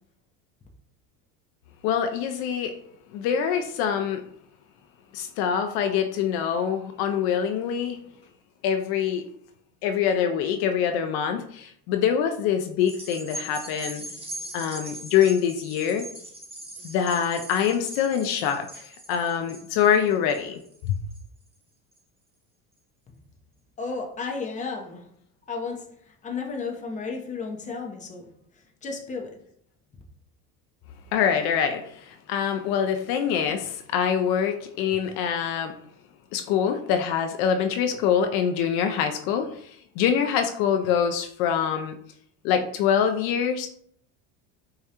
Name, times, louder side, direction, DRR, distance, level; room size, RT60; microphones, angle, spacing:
voice 1, 1.8-2.8 3.1-4.2 5.1-8.0 8.6-9.3 9.8-14.1 14.5-16.1 16.8-21.0 31.1-35.7 36.3-41.9 42.4-43.7, left 8 dB, 60° left, 6 dB, 0.5 m, -25 dB
sound 1, 12.8-21.5 22.0-22.1, right 1 dB, 15° right, 0.9 m, -41 dB
voice 2, 23.8-25.0 25.5-25.8 26.2-28.3 28.8-29.3, left 4 dB, 20° left, 1 dB, 0.6 m, -32 dB
4.6 x 2.3 x 2.8 m, 0.67 s
supercardioid pair, 110°, 42 cm